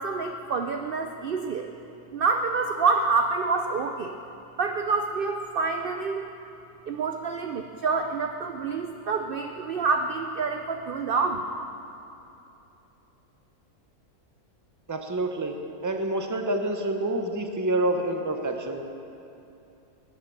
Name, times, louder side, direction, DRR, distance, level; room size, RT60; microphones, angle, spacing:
voice 1, 0.0-1.7 2.1-4.2 4.6-6.3 6.9-11.5, right 4 dB, 60° right, 5 dB, 0.6 m, -27 dB
voice 2, 14.9-15.5 15.8-18.8, right 1 dB, 15° right, 4 dB, 0.7 m, -27 dB
16.5 x 9.0 x 7.1 m, 2.8 s
omnidirectional pair, 1.6 m